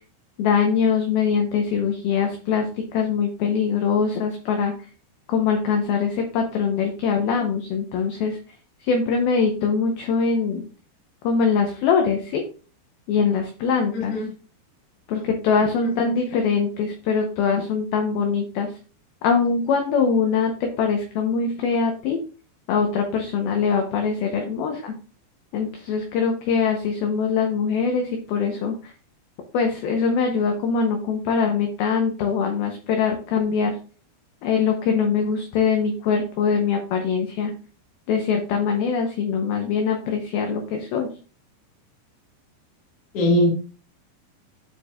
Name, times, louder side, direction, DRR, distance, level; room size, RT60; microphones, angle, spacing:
voice 1, 0.4-4.7 5.3-8.4 8.9-10.7 11.2-12.4 13.1-14.1 15.1-18.7 19.2-22.2 22.7-24.9 25.5-28.9 29.5-33.8 34.4-37.5 38.1-41.1, left 5 dB, 75° left, 2.3 m, -22 dB
voice 2, 13.9-14.3 16.0-16.1 43.1-43.5, left 1 dB, 45° left, 2.2 m, -20 dB
13.0 x 4.6 x 2.4 m
omnidirectional pair, 5.3 m